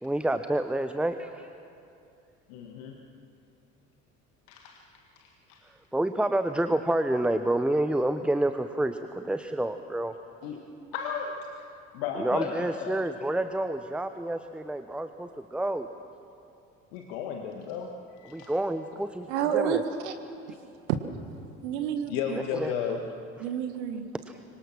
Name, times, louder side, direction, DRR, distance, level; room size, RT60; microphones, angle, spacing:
voice 1, 0.0-1.5 5.9-10.1 12.2-15.9 18.3-19.3 19.5-19.8 22.5-22.7, right 1 dB, 5° right, 9 dB, 0.9 m, -28 dB
voice 2, 2.5-3.0 4.5-5.7 10.4-10.7 10.9-13.1 16.9-18.5 22.1-23.0, left 7 dB, 60° left, 3 dB, 1.8 m, -35 dB
voice 3, 19.3-19.8 20.0-20.1 20.9-21.0 21.6-22.4 23.4-24.1, right 9 dB, 65° right, 8 dB, 1.6 m, -29 dB
25.5 x 24.5 x 6.1 m, 2.7 s
figure-of-eight pair, 55°, 38 cm